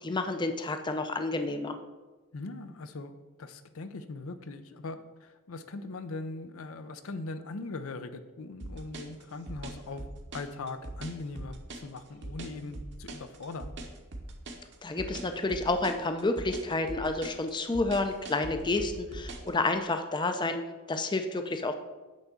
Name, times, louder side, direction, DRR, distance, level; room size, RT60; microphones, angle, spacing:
voice 1, 0.0-1.8 14.8-20.6 20.9-21.7, left 2 dB, 20° left, 7 dB, 0.5 m, -30 dB
voice 2, 2.3-3.1 3.4-10.0 10.3-13.7, left 3 dB, 70° left, 10 dB, 0.6 m, -40 dB
sound 1, 8.6-19.5, right 2 dB, 55° right, 1.1 m, -41 dB
9.2 x 3.6 x 6.9 m, 1.2 s
head